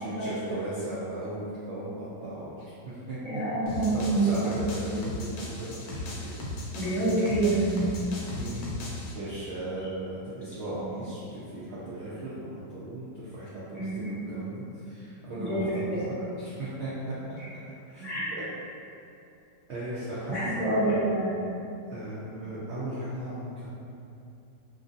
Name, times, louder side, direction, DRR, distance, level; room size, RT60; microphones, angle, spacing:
voice 1, 0.0-2.5 2.8-3.4 3.9-6.3 8.3-8.7 9.1-17.4 17.9-18.4 19.7-20.6 21.9-23.7, right 1 dB, 85° right, -11 dB, 0.6 m, -37 dB
voice 2, 3.2-4.3 6.7-8.0 13.7-14.4 15.4-15.6 18.0-18.2 20.3-21.4, right 2 dB, ahead, -14 dB, 0.7 m, -27 dB
sound 1, 3.7-9.1, left 1 dB, 70° left, 1.0 m, -37 dB
3.1 x 2.6 x 2.5 m, 2.6 s
omnidirectional pair, 1.9 m